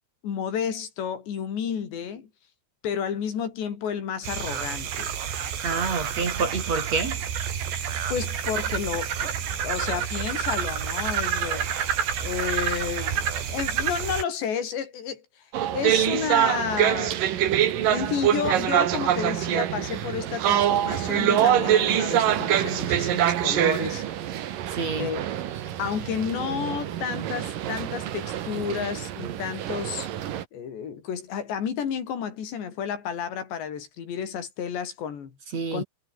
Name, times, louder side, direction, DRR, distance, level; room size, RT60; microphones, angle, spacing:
voice 1, 0.2-2.3 2.8-5.1 7.8-9.3 9.6-15.3 15.7-17.2 17.7-24.1 25.0-25.2 25.8-30.1 30.5-35.3 35.7-35.8, left 7 dB, 85° left, 6.0 m, -31 dB
sound 1, 4.2-14.2, right 8 dB, 80° right, 5.4 m, -29 dB
voice 2, 5.6-7.2 24.7-25.1 35.5-35.8, right 4 dB, 40° right, 4.6 m, -28 dB
sound 2, 15.5-30.4, right 11 dB, 60° right, 3.0 m, -25 dB
Wind instrument woodwind instrument, 20.0-23.6, left 4 dB, 30° left, 4.8 m, -44 dB
omnidirectional pair, 4.9 m